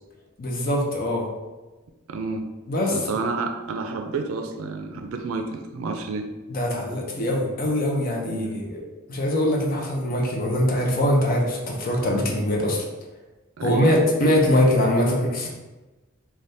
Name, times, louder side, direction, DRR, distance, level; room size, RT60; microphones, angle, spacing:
voice 1, 0.4-1.3 2.7-3.0 6.5-8.8 9.1-12.8 13.6-15.5, left 1 dB, 45° left, -1 dB, 0.5 m, -22 dB
voice 2, 2.1-2.5 2.9-6.3 8.2-8.6 13.6-14.1, right 3 dB, 85° right, 5 dB, 0.4 m, -30 dB
3.4 x 2.3 x 2.6 m, 1.2 s
head